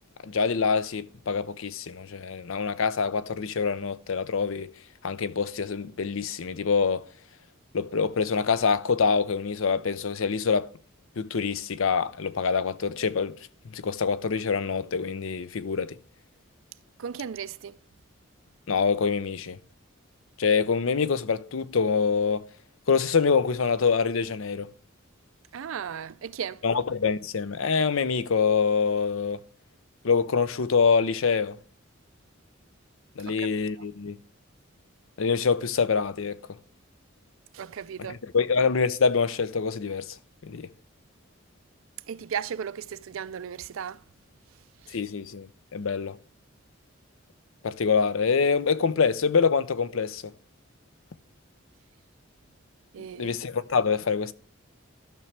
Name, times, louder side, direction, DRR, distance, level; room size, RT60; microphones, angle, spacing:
voice 1, 0.2-4.7 5.0-7.1 7.7-10.7 11.2-13.3 13.7-16.0 18.7-19.6 20.4-22.5 22.9-24.7 26.6-29.4 30.0-31.6 33.2-34.2 35.2-36.4 38.0-40.2 40.4-40.7 44.9-45.5 45.7-46.2 47.6-50.3 53.2-54.3, left 5 dB, 75° left, 0.6 m, -25 dB
voice 2, 17.0-17.7 25.5-26.6 33.3-33.5 37.5-38.2 42.1-44.0 44.9-45.0 52.9-53.4, right 7 dB, 75° right, 0.4 m, -35 dB
13.5 x 6.0 x 3.3 m
head